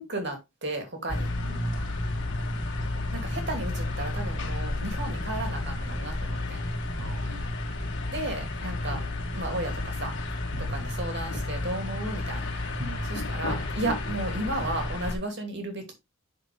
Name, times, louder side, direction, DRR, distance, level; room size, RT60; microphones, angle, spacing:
voice 1, 0.0-1.3 3.1-6.6 8.1-9.0 9.3-10.2 10.7-12.5 13.1-15.9, right 1 dB, 50° right, 2.4 m, -34 dB
sound 1, 1.1-15.1, left 2 dB, 55° left, 1.9 m, -31 dB
voice 2, 1.4-2.4 7.0-7.5 10.5-10.9 12.8-13.3, right 2 dB, 70° right, 1.4 m, -39 dB
7.7 x 6.3 x 3.2 m
head